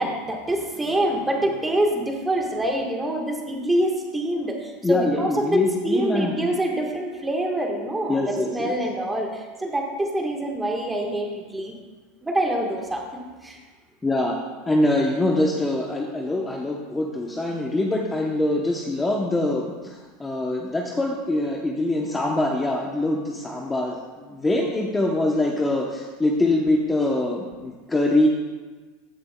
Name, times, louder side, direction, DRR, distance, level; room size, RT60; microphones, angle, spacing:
voice 1, 0.0-11.7 12.2-13.6, right 1 dB, 10° right, 1 dB, 1.3 m, -26 dB
voice 2, 4.8-6.3 8.1-8.7 14.0-14.3 14.7-28.3, left 2 dB, 10° left, 0 dB, 0.8 m, -24 dB
15.0 x 6.9 x 2.2 m, 1.4 s
supercardioid pair, 125°, 0 cm